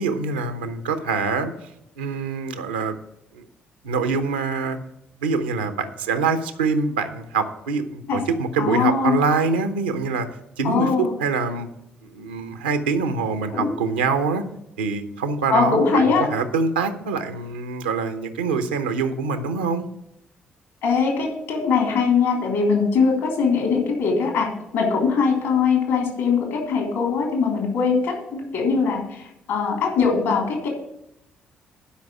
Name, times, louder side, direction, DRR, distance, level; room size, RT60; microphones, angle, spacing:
voice 1, 0.0-1.7 2.0-3.0 3.3-3.4 3.8-4.8 5.2-10.3 10.6-11.7 12.0-14.4 14.8-19.8, right 4 dB, 80° right, 9 dB, 0.8 m, -24 dB
voice 2, 8.6-9.2 10.6-11.1 13.5-13.7 15.5-16.3 20.8-24.5 24.7-30.7, left 5 dB, 70° left, 1 dB, 3.2 m, -21 dB
11.5 x 5.3 x 7.5 m, 0.81 s
figure-of-eight pair, 40°, 5 cm